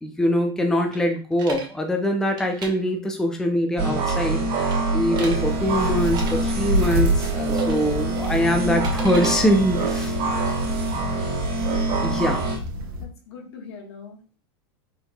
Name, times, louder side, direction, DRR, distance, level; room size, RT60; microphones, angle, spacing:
voice 1, 0.0-10.2 12.0-12.5, equal, 5° left, 3 dB, 0.5 m, -23 dB
sound 1, 0.9-1.7 2.3-2.7 4.0-4.4 4.7-5.4 6.1-6.3 7.5-7.9 8.2-9.4, right 4 dB, 30° right, 0.9 m, -37 dB
sound 2, 3.8-12.6, right 3 dB, 50° right, 2.1 m, -25 dB
sound 3, 5.3-13.0, equal, 70° right, 1.2 m, -30 dB
voice 2, 10.4-10.9 13.0-14.4, left 5 dB, 80° left, 0 dB, 1.5 m, -43 dB
4.4 x 3.5 x 2.3 m, 0.37 s
supercardioid pair, 130°, 14 cm